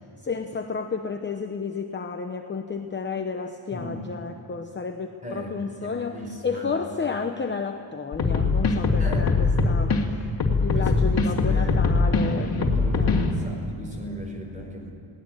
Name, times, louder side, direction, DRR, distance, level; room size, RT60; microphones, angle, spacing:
voice 1, 0.2-6.2 6.4-10.2 10.5-12.5 12.9-13.1, left 5 dB, 20° left, 5 dB, 0.9 m, -31 dB
voice 2, 3.7-4.1 5.2-5.5 5.8-6.8 9.0-9.3 10.7-11.8 12.5-14.9, equal, 15° right, 1 dB, 5.0 m, -37 dB
sound 1, 8.1-10.0 10.4-13.3, left 4 dB, 45° left, 2.5 m, -21 dB
21.5 x 18.0 x 9.1 m, 2.8 s
wide cardioid pair, 165°, 50 cm